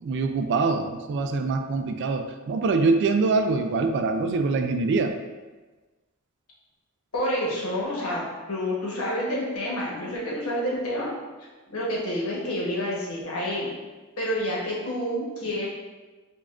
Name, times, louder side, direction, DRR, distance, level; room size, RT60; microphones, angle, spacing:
voice 1, 0.0-5.2, right 3 dB, 55° right, 6 dB, 0.3 m, -24 dB
voice 2, 7.1-11.1 11.7-13.7 14.2-15.7, equal, 80° left, -4 dB, 1.1 m, -28 dB
5.2 x 2.4 x 2.4 m, 1.3 s
head